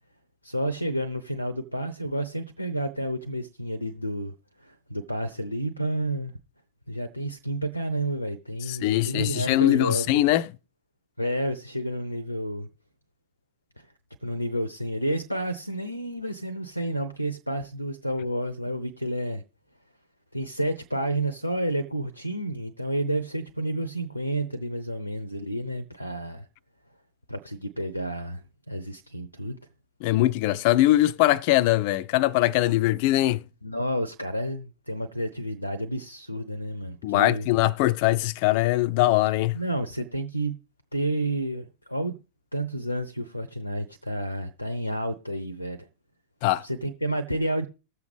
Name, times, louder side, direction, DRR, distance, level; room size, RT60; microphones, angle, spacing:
voice 1, 0.4-4.3 4.6-6.3 6.9-10.2 11.2-12.7 14.2-19.4 20.3-26.5 27.3-29.6 33.6-37.5 39.5-40.6 40.9-42.2 42.5-45.9 46.6-47.7, right 1 dB, 90° left, 0.7 m, -30 dB
voice 2, 8.7-10.5 30.0-33.4 37.0-39.6 46.4-46.6, left 16 dB, 45° left, 0.5 m, -22 dB
19.5 x 7.0 x 3.4 m
figure-of-eight pair, 90°, 0 cm